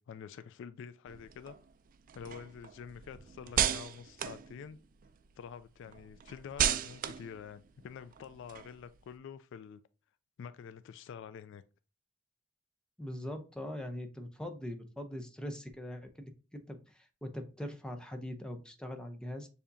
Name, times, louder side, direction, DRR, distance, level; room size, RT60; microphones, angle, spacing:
voice 1, 0.0-1.6 2.1-4.8 5.4-9.8 10.4-11.6, left 7 dB, 65° left, 0.3 m, -47 dB
sound 1, 1.1-5.2 5.6-9.1, right 9 dB, 45° right, 0.3 m, -36 dB
voice 2, 13.0-19.5, left 1 dB, 5° left, 0.6 m, -42 dB
6.8 x 2.8 x 2.6 m
head